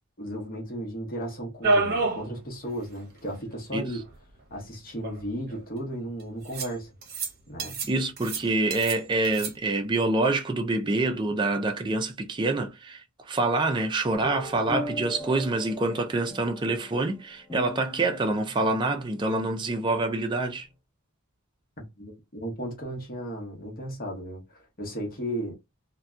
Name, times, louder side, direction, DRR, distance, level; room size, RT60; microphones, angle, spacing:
voice 1, 0.2-4.0 4.5-6.9 7.5-7.8 21.8-24.4 24.8-25.5, equal, 45° left, 0.9 m, -35 dB
sound 1, 1.6-2.3 2.6-2.7 3.0-3.1 4.1-4.2 5.0-5.6 6.5-6.7 7.0-7.3 7.6-7.9 8.2-9.0 9.2-9.5, right 3 dB, 45° right, 0.8 m, -27 dB
voice 2, 7.9-20.7, right 2 dB, 20° right, 0.4 m, -26 dB
sound 2, 14.1-20.7, left 1 dB, 10° left, 0.8 m, -40 dB
2.6 x 2.2 x 2.3 m
head